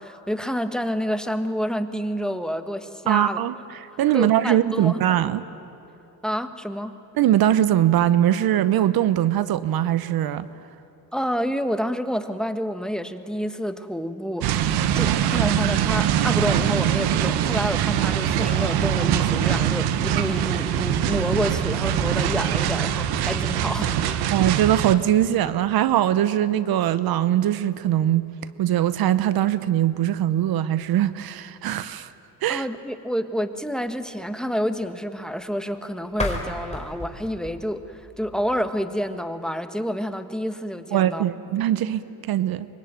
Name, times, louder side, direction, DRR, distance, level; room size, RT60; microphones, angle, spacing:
voice 1, 0.0-3.4 4.1-5.1 6.2-6.9 11.1-24.3 32.5-41.2, equal, ahead, 1.5 m, -28 dB
voice 2, 3.1-3.5 4.0-5.4 7.2-10.5 24.3-28.3 28.6-32.1 32.4-32.6 40.9-42.7, right 12 dB, 70° right, 0.9 m, -21 dB
sound 1, 14.4-24.9, right 10 dB, 90° right, 1.2 m, -23 dB
sound 2, 36.1-39.0, left 2 dB, 15° left, 4.3 m, -34 dB
24.5 x 23.0 x 9.0 m
cardioid pair, 80°, 38 cm